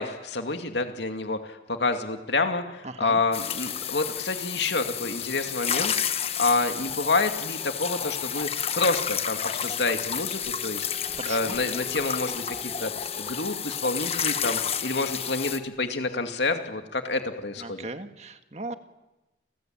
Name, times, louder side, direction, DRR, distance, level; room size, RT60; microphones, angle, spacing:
voice 1, 0.0-10.9 11.3-12.9 13.2-17.9, left 3 dB, 80° left, 6 dB, 2.3 m, -28 dB
voice 2, 2.8-3.2 11.2-11.6 17.6-18.7, right 2 dB, 40° right, 8 dB, 1.8 m, -37 dB
sound 1, 3.3-15.6, left 8 dB, 35° left, 1.3 m, -31 dB
sound 2, 9.8-15.7, left 1 dB, 5° right, 6.1 m, -47 dB
29.5 x 21.5 x 8.9 m, 1.0 s
head